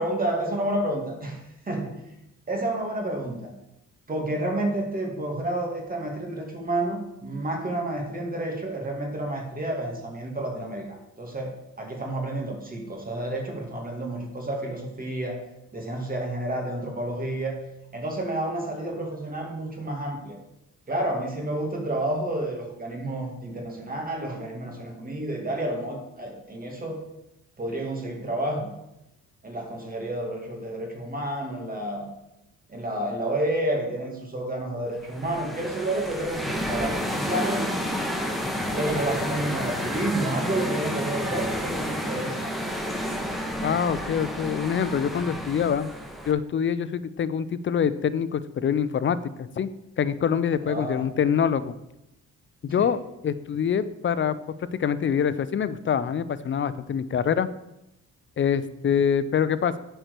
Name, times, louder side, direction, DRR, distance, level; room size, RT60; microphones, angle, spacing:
voice 1, 0.0-1.4 1.7-2.0 2.5-3.5 4.1-11.5 11.8-15.4 15.7-17.6 17.9-20.4 20.9-27.0 27.6-28.7 29.4-32.1 32.7-37.7 38.7-42.6 50.6-51.0 52.8-52.9, right 1 dB, 30° right, 0 dB, 2.2 m, -30 dB
sound 1, 35.0-46.3, equal, ahead, 1.3 m, -30 dB
voice 2, 43.6-45.9 46.3-49.7 50.0-51.7 52.6-54.4 54.8-57.5 58.4-59.8, left 7 dB, 40° left, 15 dB, 0.6 m, -25 dB
8.7 x 4.6 x 6.7 m, 0.89 s
cardioid pair, 90°, 30 cm